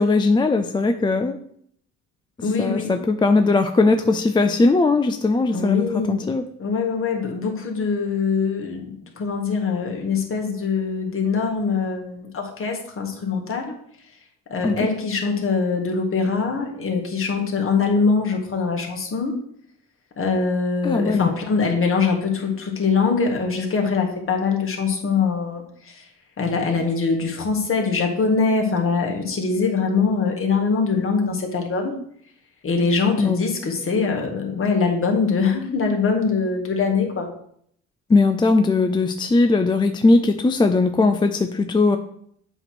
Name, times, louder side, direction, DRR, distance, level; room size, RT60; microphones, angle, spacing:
voice 1, 0.0-1.4 2.6-6.4 14.6-14.8 20.8-21.3 33.2-33.4 38.1-42.0, left 3 dB, 15° left, 7 dB, 0.4 m, -19 dB
voice 2, 2.4-2.9 5.5-13.7 14.5-19.3 20.2-26.0 26.4-31.9 32.6-37.3, left 5 dB, 45° left, 1 dB, 1.7 m, -23 dB
7.7 x 3.1 x 6.0 m, 0.66 s
cardioid pair, 90°, 30 cm